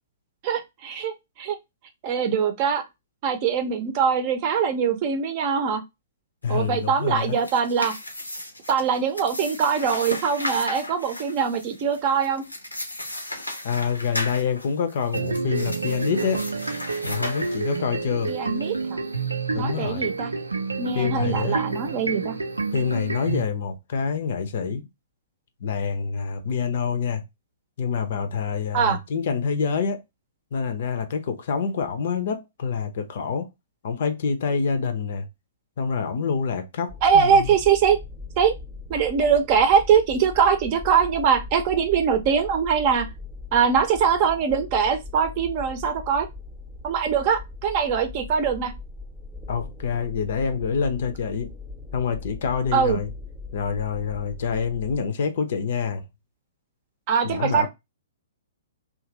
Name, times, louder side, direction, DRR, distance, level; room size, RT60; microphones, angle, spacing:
voice 1, 0.4-1.6 2.0-2.8 3.2-5.8 6.5-7.9 8.7-12.4 18.3-19.0 19.6-20.3 20.8-22.3 28.7-29.0 37.0-38.0 38.4-38.5 38.9-43.1 43.5-46.3 46.8-48.7 52.7-53.0 57.1-57.7, right 7 dB, 35° right, 0.7 m, -22 dB
voice 2, 6.4-7.4 13.6-16.5 17.0-18.3 19.5-20.1 20.9-21.6 22.7-24.8 25.6-27.2 27.8-30.0 30.5-33.5 33.8-35.3 35.8-37.5 49.5-51.5 51.9-53.1 53.5-56.0 57.2-57.7, left 6 dB, 50° left, 0.6 m, -26 dB
sound 1, 7.1-18.0, left 1 dB, 85° left, 0.7 m, -35 dB
sound 2, 15.1-23.4, right 4 dB, 80° right, 0.4 m, -29 dB
sound 3, 36.9-55.0, left 3 dB, ahead, 0.8 m, -40 dB
2.9 x 2.5 x 2.8 m
figure-of-eight pair, 115°, 0 cm